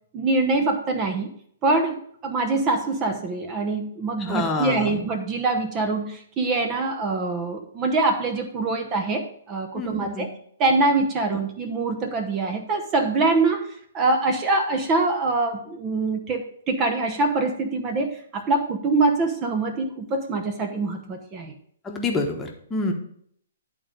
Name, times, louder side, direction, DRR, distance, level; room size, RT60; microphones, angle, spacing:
voice 1, 0.1-1.3 1.6-10.3 10.6-13.7 13.9-21.5, right 3 dB, 25° right, 4 dB, 0.9 m, -24 dB
voice 2, 4.2-5.0 9.7-10.3 21.8-22.9, left 3 dB, 15° left, 1 dB, 1.2 m, -27 dB
11.0 x 3.9 x 5.2 m, 0.64 s
hypercardioid pair, 135°, 0 cm